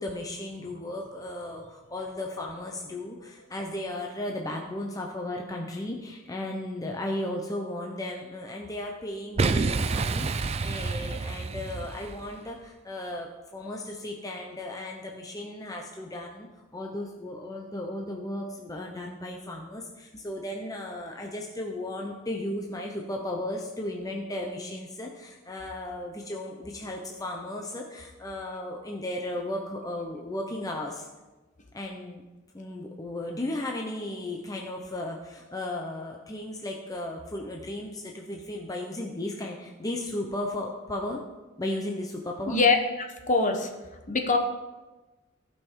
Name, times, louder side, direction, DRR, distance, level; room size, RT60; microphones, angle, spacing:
voice 1, 0.0-16.5 16.7-31.1 31.7-32.2 32.5-41.2 41.6-42.6, left 1 dB, 20° left, 0 dB, 0.8 m, -35 dB
Boom, 9.4-12.3, right 3 dB, 30° right, 0.4 m, -28 dB
voice 2, 42.5-43.7 44.1-44.4, left 3 dB, 40° left, 4 dB, 1.1 m, -24 dB
15.5 x 5.5 x 4.6 m, 1.2 s
head